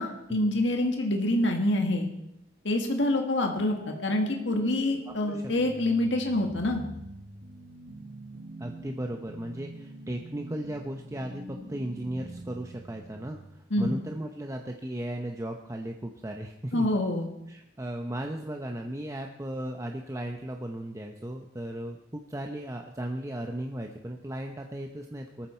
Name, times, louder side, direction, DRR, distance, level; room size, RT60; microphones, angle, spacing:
voice 1, 0.0-2.1 2.6-6.8 13.7-14.0 16.7-17.3, left 1 dB, 75° left, 3 dB, 1.8 m, -26 dB
sound 1, 3.4-13.5, right 1 dB, 55° right, 4.6 m, -45 dB
voice 2, 8.6-16.9 17.5-25.5, right 1 dB, 15° right, 3 dB, 0.8 m, -36 dB
19.5 x 14.0 x 4.4 m, 0.82 s
head